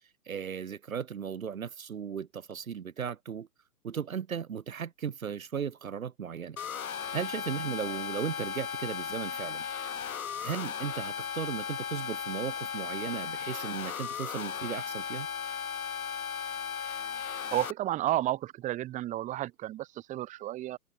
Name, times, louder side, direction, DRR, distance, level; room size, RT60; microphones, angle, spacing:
voice 1, 0.3-3.5 3.8-6.6 7.1-9.7 10.4-15.3, right 7 dB, 60° right, 2.1 m, -36 dB
sound 1, 6.6-17.7, left 7 dB, 60° left, 2.0 m, -36 dB
voice 2, 17.5-20.8, right 14 dB, 15° right, 2.6 m, -32 dB
figure-of-eight pair, 135°, 47 cm